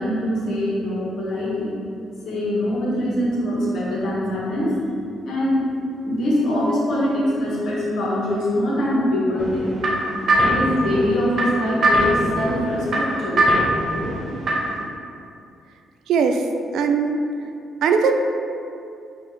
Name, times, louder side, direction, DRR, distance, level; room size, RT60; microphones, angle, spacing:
voice 1, 0.0-1.7 2.2-4.7 5.2-5.6 6.0-9.7 10.4-13.4, left 1 dB, 70° left, -6 dB, 1.3 m, -23 dB
sound 1, 9.4-14.8, right 1 dB, 50° right, 0.8 m, -22 dB
voice 2, 16.1-16.4 16.7-17.2 17.8-18.1, right 6 dB, 80° right, 5 dB, 0.3 m, -19 dB
4.3 x 2.6 x 4.8 m, 2.5 s
cardioid pair, 90°, 0 cm